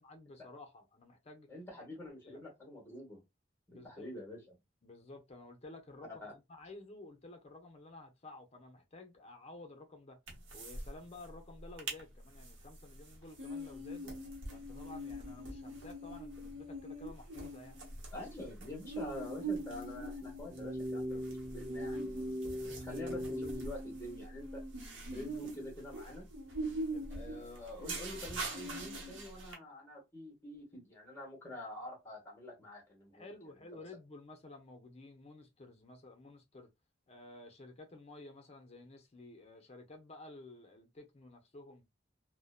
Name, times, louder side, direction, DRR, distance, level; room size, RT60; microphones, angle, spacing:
voice 1, 0.0-1.5 2.2-2.4 3.7-4.1 4.8-10.2 10.5-14.1 14.5-17.8 26.9-27.1 33.1-36.7 37.1-41.9, left 2 dB, 35° left, 0.6 m, -53 dB
voice 2, 1.5-3.2 3.7-4.4 6.2-6.3 18.1-24.6 25.1-26.3 27.1-33.2, left 1 dB, 10° left, 1.0 m, -47 dB
sound 1, 10.3-10.9 11.2-11.3 11.6-12.0 12.4-29.5, right 1 dB, 75° right, 0.8 m, -43 dB
sound 2, 20.5-23.7, equal, 30° right, 0.4 m, -39 dB
2.6 x 2.1 x 2.3 m
head